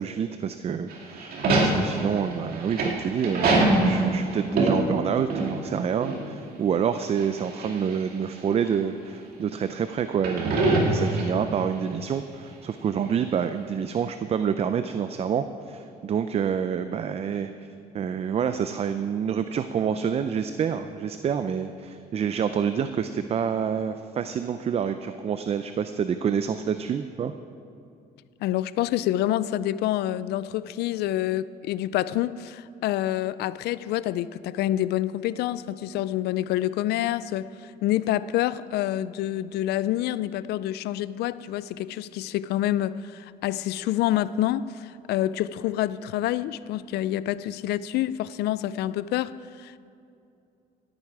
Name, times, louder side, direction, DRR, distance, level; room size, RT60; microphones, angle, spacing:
voice 1, 0.0-17.7 17.9-27.3, right 7 dB, 35° right, 10 dB, 0.5 m, -27 dB
sound 1, 0.9-5.8 6.0-6.2 7.2-8.0 8.6-8.7 10.1-11.6, right 2 dB, 60° right, 2.4 m, -23 dB
voice 2, 28.4-49.8, left 13 dB, 75° left, 17 dB, 0.4 m, -27 dB
17.0 x 9.0 x 4.8 m, 2.5 s
cardioid pair, 110°, 17 cm